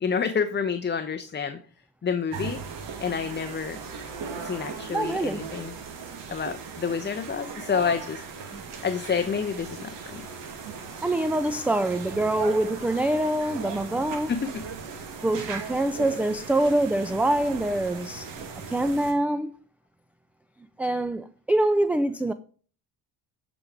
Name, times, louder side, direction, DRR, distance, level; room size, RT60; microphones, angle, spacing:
voice 1, 0.0-1.6 2.0-2.6 3.0-3.8 4.4-5.7 6.3-8.2 8.8-10.3 14.3-14.6, left 6 dB, 25° left, 0.8 m, -28 dB
sound 1, 2.3-19.1, right 5 dB, 75° right, 2.3 m, -38 dB
voice 2, 4.9-5.5 8.5-8.6 11.0-14.3 15.2-18.3 18.7-19.5 20.8-22.3, right 1 dB, 5° right, 0.3 m, -25 dB
12.5 x 5.2 x 4.7 m
cardioid pair, 100°, 43 cm